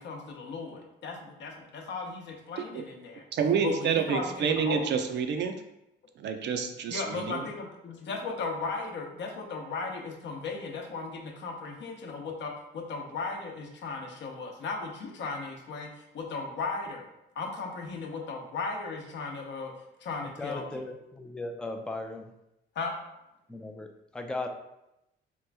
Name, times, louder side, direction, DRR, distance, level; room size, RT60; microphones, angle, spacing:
voice 1, 0.0-3.2 3.6-4.9 6.9-17.1 17.4-19.7 20.0-20.8 22.8-23.0, left 4 dB, 65° left, 2 dB, 0.7 m, -36 dB
voice 2, 3.3-5.5 6.2-7.5, right 6 dB, 60° right, 6 dB, 0.4 m, -28 dB
voice 3, 20.4-22.3 23.5-24.5, left 2 dB, 5° left, 5 dB, 0.3 m, -37 dB
3.0 x 2.4 x 3.3 m, 0.87 s
cardioid pair, 90°, 20 cm